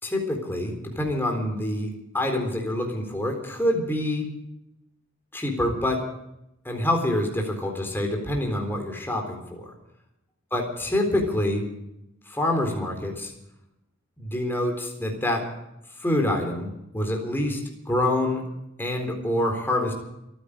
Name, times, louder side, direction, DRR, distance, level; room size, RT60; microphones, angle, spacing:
voice 1, 0.0-4.3 5.3-6.0 6.6-9.7 10.5-11.7 12.3-13.3 14.2-15.5 16.0-17.6 17.9-18.4 18.8-19.9, left 1 dB, 10° left, 2 dB, 4.0 m, -26 dB
28.0 x 10.0 x 5.1 m, 0.85 s
head